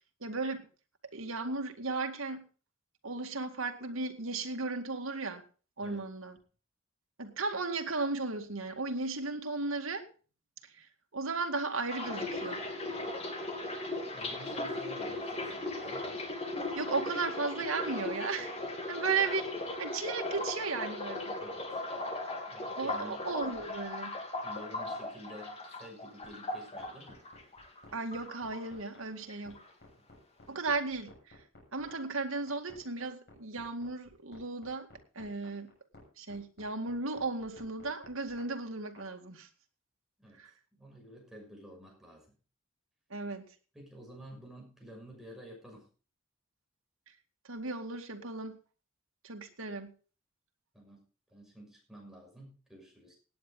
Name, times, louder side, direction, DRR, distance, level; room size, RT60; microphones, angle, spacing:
voice 1, 0.2-0.7 1.1-2.5 3.0-5.4 5.8-6.4 7.2-10.1 10.6-10.9 11.1-12.6 16.7-18.5 18.9-21.4 22.8-24.2 27.9-29.6 30.5-31.4 31.7-34.9 35.2-35.7 36.2-39.5 40.4-40.5 43.1-43.4 47.4-48.6 49.2-49.9, right 3 dB, 85° right, 4 dB, 2.2 m, -35 dB
sound 1, 11.9-27.8 28.1-29.0 29.3-29.6, left 2 dB, 30° left, 3.0 m, -38 dB
voice 2, 14.1-16.1 21.4-21.8 22.5-23.2 23.6-23.7 24.4-27.2 30.0-30.1 40.2-42.3 43.7-45.9 50.7-51.0 51.3-53.2, equal, ahead, -1 dB, 6.2 m, -51 dB
sound 2, 26.2-39.1, left 2 dB, 55° left, 6.8 m, -55 dB
17.5 x 9.6 x 3.9 m, 0.37 s
head